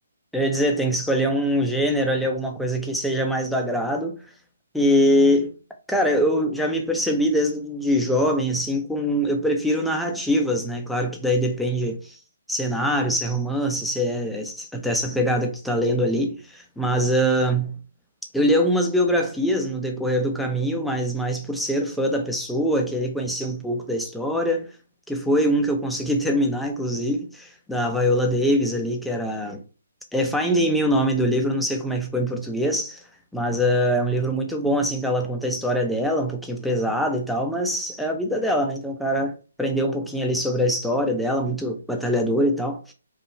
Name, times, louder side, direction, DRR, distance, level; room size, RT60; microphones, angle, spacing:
voice 1, 0.3-4.2 4.7-5.5 5.9-12.2 12.5-17.8 18.3-24.7 25.1-29.6 30.1-33.0 33.3-42.9, equal, ahead, 0.6 m, -23 dB
4.7 x 2.4 x 2.9 m
figure-of-eight pair, 140°, 0 cm